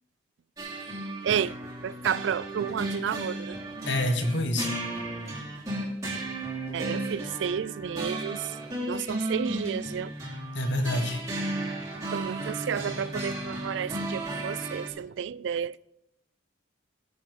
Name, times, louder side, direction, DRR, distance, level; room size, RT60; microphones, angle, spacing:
sound 1, 0.6-14.9, right 1 dB, 20° right, 3.0 m, -34 dB
voice 1, 1.2-1.5 1.8-3.6 6.7-8.5 8.9-10.1 12.1-15.8, right 8 dB, 75° right, 0.3 m, -31 dB
voice 2, 3.9-4.7 10.5-11.2, left 1 dB, 70° left, 1.4 m, -27 dB
17.0 x 6.2 x 5.3 m
head